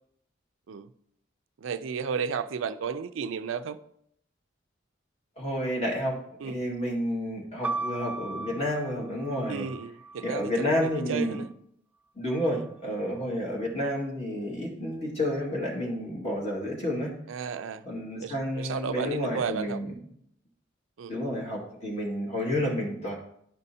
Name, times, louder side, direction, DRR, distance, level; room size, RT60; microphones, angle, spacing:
voice 1, 1.6-3.8 6.4-6.6 9.5-11.5 12.5-12.6 17.3-17.9 18.2-19.8 21.0-21.1, right 6 dB, 90° right, 0.4 m, -33 dB
voice 2, 5.4-6.2 6.4-9.7 10.2-11.4 12.2-17.1 17.9-19.9 21.1-23.1, equal, 35° left, 1.9 m, -30 dB
sound 1, 7.6-11.5 12.3-13.0, right 3 dB, 10° right, 0.3 m, -38 dB
10.5 x 5.4 x 2.7 m
head